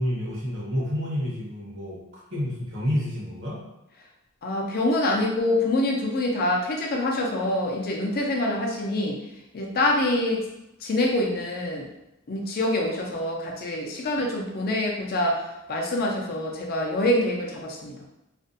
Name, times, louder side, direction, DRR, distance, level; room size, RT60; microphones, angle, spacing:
voice 1, 0.0-3.6, equal, 60° right, -4 dB, 0.9 m, -29 dB
voice 2, 4.4-9.2 9.5-10.4 10.8-11.9 12.3-15.4 15.7-18.0, left 1 dB, 45° left, 0 dB, 0.4 m, -25 dB
2.4 x 2.1 x 2.5 m, 0.90 s
head